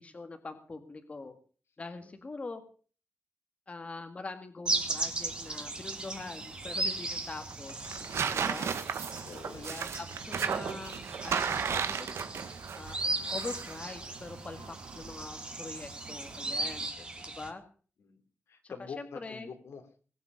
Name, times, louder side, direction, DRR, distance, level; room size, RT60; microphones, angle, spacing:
voice 1, 0.0-1.4 1.8-2.6 3.7-7.8 8.3-8.7 9.4-12.2 12.8-13.0 13.3-16.9 17.4-17.6 18.6-18.7 19.2-19.5, left 3 dB, 30° left, 7 dB, 1.9 m, -43 dB
sound 1, 4.7-17.5, right 2 dB, 20° right, 2.5 m, -37 dB
sound 2, 4.7-16.9, right 6 dB, 85° right, 1.6 m, -37 dB
voice 2, 9.2-9.7 14.6-14.8 17.0-17.4 18.0-18.2 18.5-20.0, left 5 dB, 85° left, 6 dB, 3.4 m, -47 dB
21.5 x 8.5 x 6.7 m, 0.41 s
wide cardioid pair, 175°, 4 cm